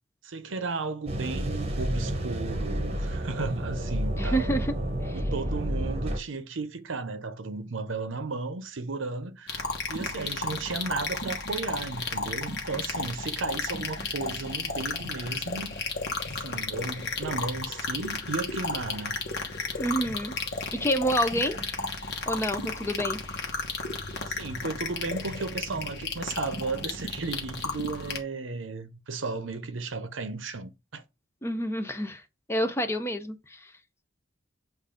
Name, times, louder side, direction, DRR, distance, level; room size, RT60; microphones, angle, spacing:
voice 1, 0.2-4.5 5.1-15.9 16.3-19.2 24.2-31.0, right 3 dB, 70° right, 0.8 m, -34 dB
sound 1, 1.1-6.2, right 1 dB, 30° right, 1.0 m, -30 dB
voice 2, 4.2-4.7 5.0-5.2 19.8-20.3 20.8-21.8 22.3-23.2 31.4-32.2 32.5-33.7, equal, 15° left, 0.6 m, -28 dB
sound 2, 9.5-28.2, left 3 dB, 60° left, 1.2 m, -33 dB
7.6 x 2.6 x 5.0 m
head